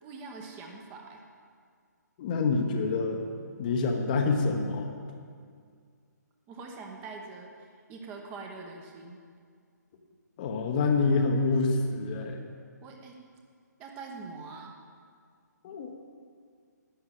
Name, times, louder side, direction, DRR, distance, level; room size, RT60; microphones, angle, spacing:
voice 1, 0.0-1.2 6.5-7.5 7.9-9.2 12.8-13.2 13.8-14.7, right 4 dB, 15° right, 1 dB, 1.1 m, -43 dB
voice 2, 2.2-3.2 3.6-4.9 10.4-12.4 15.6-15.9, left 3 dB, 25° left, 3 dB, 1.1 m, -27 dB
11.5 x 9.3 x 7.5 m, 2.1 s
figure-of-eight pair, 135°, 10 cm